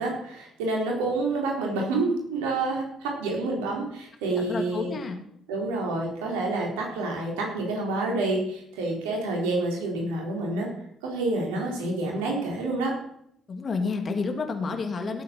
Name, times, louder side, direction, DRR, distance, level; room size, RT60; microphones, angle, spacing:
voice 1, 0.0-4.9 5.5-10.7 11.0-12.9, right 2 dB, 75° right, 0 dB, 4.0 m, -28 dB
voice 2, 4.3-5.2 13.5-15.2, left 4 dB, 40° left, 5 dB, 2.5 m, -30 dB
17.5 x 8.4 x 6.0 m, 0.73 s
figure-of-eight pair, 45°, 0 cm